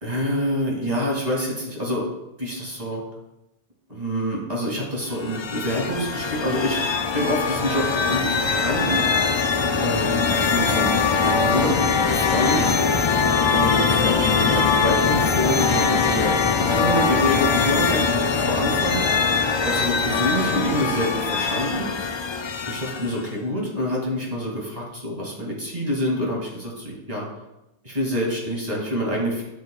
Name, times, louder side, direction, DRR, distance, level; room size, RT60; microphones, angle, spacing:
voice 1, 0.0-2.0 2.4-3.0 3.9-6.8 7.1-9.0 9.8-12.7 13.5-19.0 19.6-21.9 22.7-27.3 27.8-29.4, equal, 35° right, -3 dB, 2.6 m, -26 dB
sound 1, 5.1-23.3, left 5 dB, 45° left, 0.3 m, -22 dB
13.5 x 6.2 x 2.4 m, 0.94 s
omnidirectional pair, 1.1 m